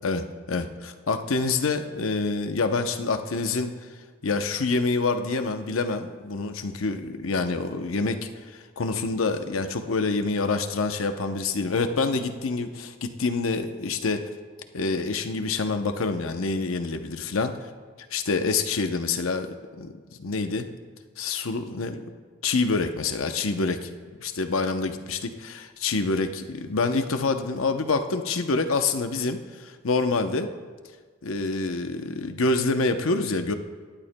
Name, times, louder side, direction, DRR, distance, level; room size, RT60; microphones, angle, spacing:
voice 1, 0.0-3.7 4.2-14.2 14.7-17.5 18.1-19.9 20.2-20.7 21.2-21.9 22.4-23.9 24.2-30.5 31.2-33.5, left 3 dB, 85° left, 7 dB, 0.7 m, -27 dB
18.0 x 11.5 x 2.2 m, 1.5 s
head